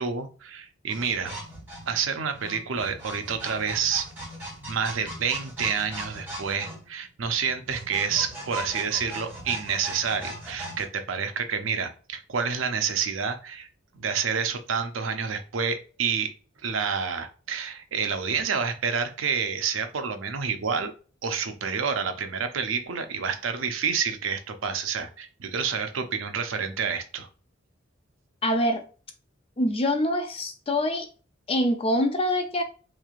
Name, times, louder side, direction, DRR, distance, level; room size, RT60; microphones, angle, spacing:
voice 1, 0.0-1.3 1.9-4.1 4.7-13.7 13.9-16.3 16.6-20.9 21.2-27.3, right 6 dB, 80° right, 0.6 m, -28 dB
sound 1, 0.9-10.8, right 1 dB, 10° right, 1.5 m, -39 dB
voice 2, 28.4-28.8 29.6-31.1 31.5-32.6, left 1 dB, 30° left, 0.5 m, -25 dB
3.6 x 3.2 x 2.4 m
head